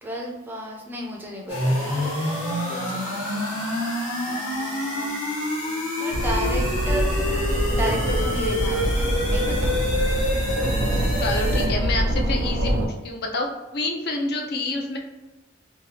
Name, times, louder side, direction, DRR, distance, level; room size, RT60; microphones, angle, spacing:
voice 1, 0.0-3.6 4.3-5.2 6.0-9.8, equal, 10° right, -1 dB, 0.4 m, -33 dB
sound 1, 1.5-11.7, left 1 dB, 75° left, 1.3 m, -27 dB
Laughter, 2.6-6.3, left 1 dB, 35° left, 0.8 m, -43 dB
sound 2, 6.1-12.9, equal, 90° right, 0.5 m, -24 dB
voice 2, 11.2-15.0, left 2 dB, 50° left, 2 dB, 0.4 m, -28 dB
2.8 x 2.3 x 2.8 m, 1.1 s
head